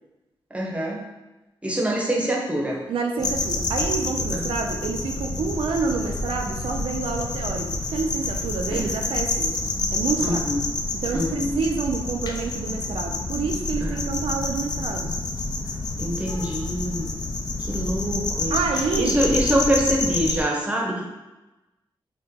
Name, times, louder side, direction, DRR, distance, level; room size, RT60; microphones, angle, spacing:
voice 1, 0.5-1.0 1.6-2.8 4.3-4.5 8.7-8.9 10.2-10.6 11.1-11.5 13.8-14.0 16.0-17.1 17.6-21.0, equal, 15° right, -2 dB, 0.7 m, -25 dB
voice 2, 2.9-9.6 9.9-10.4 10.9-15.1 18.5-19.2, right 5 dB, 85° right, 3 dB, 0.4 m, -28 dB
sound 1, 3.2-20.4, left 2 dB, 50° left, 0.4 m, -28 dB
2.8 x 2.1 x 3.6 m, 1.1 s
cardioid pair, 80°, 9 cm